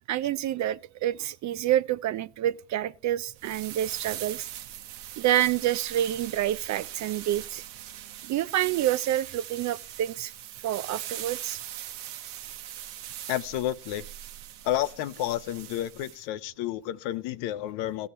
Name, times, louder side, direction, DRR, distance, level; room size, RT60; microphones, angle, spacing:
voice 1, 0.1-4.5 5.2-7.6 8.3-10.3 10.6-11.6, right 12 dB, 40° right, 0.4 m, -28 dB
sound 1, 3.4-16.2, right 12 dB, 65° right, 1.1 m, -41 dB
voice 2, 13.3-14.0 14.6-18.1, left 13 dB, 60° left, 0.8 m, -30 dB
16.0 x 7.0 x 4.2 m
hypercardioid pair, 70°, 49 cm